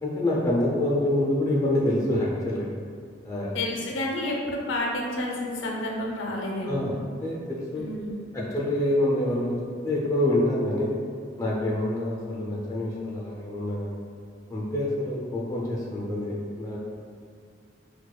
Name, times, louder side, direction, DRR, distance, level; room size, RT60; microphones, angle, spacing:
voice 1, 0.0-2.7 3.2-3.5 6.6-6.9 7.2-7.9 8.3-9.6 9.8-10.9 11.4-14.0 14.5-16.8, left 1 dB, 15° left, -5 dB, 0.4 m, -26 dB
voice 2, 3.5-6.8 7.8-8.3, left 1 dB, 85° left, -1 dB, 0.5 m, -30 dB
4.4 x 2.3 x 2.2 m, 2.1 s
head